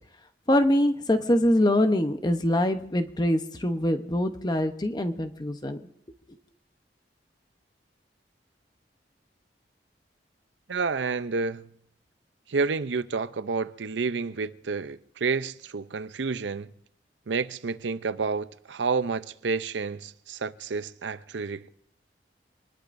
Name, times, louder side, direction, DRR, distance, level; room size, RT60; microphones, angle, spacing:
voice 1, 0.5-5.8, left 1 dB, 25° left, 0.9 m, -24 dB
voice 2, 10.7-11.7 12.5-16.7 17.3-21.7, right 4 dB, 80° right, 0.6 m, -30 dB
27.0 x 20.0 x 2.6 m
head